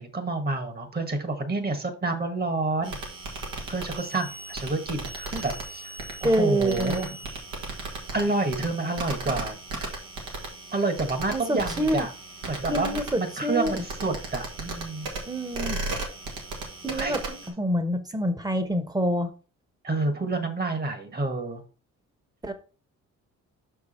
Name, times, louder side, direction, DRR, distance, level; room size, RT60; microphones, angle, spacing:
voice 1, 0.0-3.0 3.7-5.9 6.2-7.1 8.1-9.5 10.7-12.1 12.5-15.1 16.9-17.4 19.8-21.6, right 3 dB, 30° right, 8 dB, 1.4 m, -29 dB
sound 1, 2.8-17.5, right 2 dB, 85° right, 1.9 m, -36 dB
voice 2, 6.2-7.0 11.3-12.1 12.7-13.8 15.3-15.8 16.8-17.2 17.6-19.3 22.4-22.5, right 1 dB, 10° right, 9 dB, 1.1 m, -26 dB
5.9 x 4.8 x 4.3 m, 0.36 s
cardioid pair, 90°, 30 cm